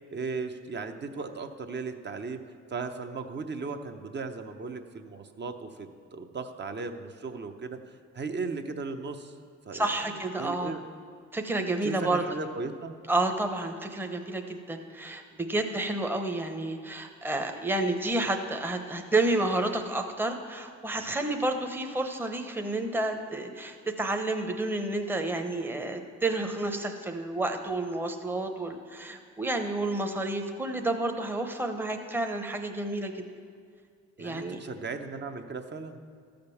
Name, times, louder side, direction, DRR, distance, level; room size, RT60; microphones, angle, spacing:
voice 1, 0.1-2.4 2.7-9.4 9.6-10.8 11.8-12.9 34.2-36.0, right 4 dB, 35° right, 6 dB, 0.8 m, -37 dB
voice 2, 9.7-10.7 11.3-12.2 13.1-33.2 34.2-34.6, right 2 dB, 5° right, 4 dB, 0.8 m, -30 dB
13.5 x 5.2 x 7.1 m, 2.1 s
cardioid pair, 90°, 30 cm